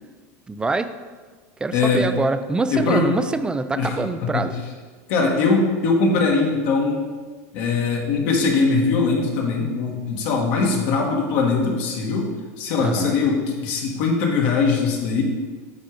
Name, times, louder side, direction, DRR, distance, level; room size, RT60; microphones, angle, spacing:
voice 1, 0.5-0.9 1.6-4.5 12.8-13.1, right 3 dB, 10° right, 11 dB, 0.3 m, -25 dB
voice 2, 1.7-2.1 2.7-3.2 3.7-4.4 5.1-7.0 7.5-12.3 12.6-15.2, left 4 dB, 60° left, 0 dB, 1.5 m, -21 dB
8.2 x 3.7 x 4.7 m, 1.4 s
supercardioid pair, 125°, 9 cm